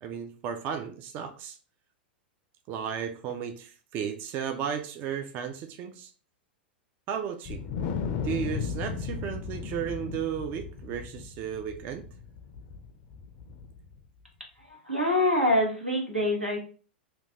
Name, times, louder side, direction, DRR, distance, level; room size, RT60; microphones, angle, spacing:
voice 1, 0.0-1.6 2.7-6.1 7.1-7.6 8.2-12.0, right 8 dB, 35° right, 7 dB, 0.3 m, -34 dB
Wind, 7.5-14.0, left 6 dB, 40° left, 0.4 m, -35 dB
voice 2, 14.6-16.6, left 1 dB, 90° right, -1 dB, 0.9 m, -25 dB
3.0 x 2.4 x 2.8 m, 0.38 s
figure-of-eight pair, 95°, 6 cm